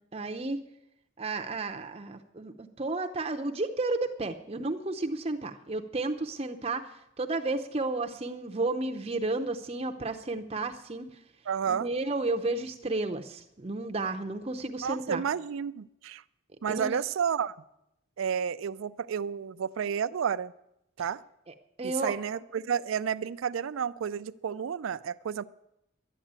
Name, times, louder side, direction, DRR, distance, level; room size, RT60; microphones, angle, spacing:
voice 1, 0.1-0.6 1.2-6.9 7.2-11.1 11.7-15.2 16.7-16.9 21.5-22.1, right 2 dB, 30° right, 4 dB, 0.6 m, -32 dB
voice 2, 11.5-11.9 14.8-16.2 16.6-17.5 18.2-20.5 21.0-21.2 21.8-25.4, right 7 dB, 85° right, 13 dB, 0.4 m, -31 dB
12.0 x 10.0 x 8.8 m, 0.85 s
head